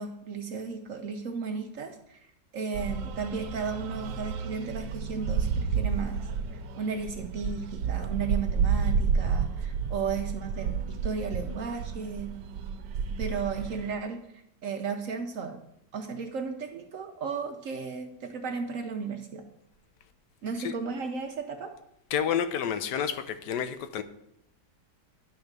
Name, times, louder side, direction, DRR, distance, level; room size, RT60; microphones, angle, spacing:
voice 1, 0.0-12.3 13.2-15.6 15.9-19.4 20.4-21.7, right 5 dB, 60° right, 5 dB, 0.9 m, -35 dB
sound 1, 2.7-13.9, right 6 dB, 85° right, 1.3 m, -31 dB
voice 2, 22.1-24.0, left 8 dB, 75° left, 10 dB, 1.2 m, -29 dB
10.5 x 3.5 x 6.5 m, 0.77 s
omnidirectional pair, 1.9 m